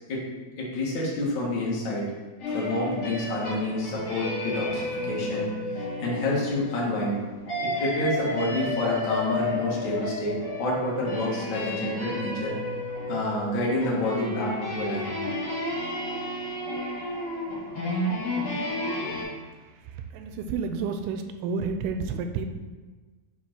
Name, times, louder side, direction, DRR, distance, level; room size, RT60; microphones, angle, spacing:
voice 1, 0.6-2.1 2.5-7.2 7.6-12.6 13.1-15.2, left 1 dB, 65° left, -4 dB, 1.1 m, -28 dB
sound 1, 2.4-19.2, left 1 dB, 50° left, 3.0 m, -32 dB
voice 2, 19.8-22.4, right 5 dB, 85° right, 7 dB, 2.4 m, -30 dB
5.7 x 4.9 x 4.4 m, 1.3 s
omnidirectional pair, 4.4 m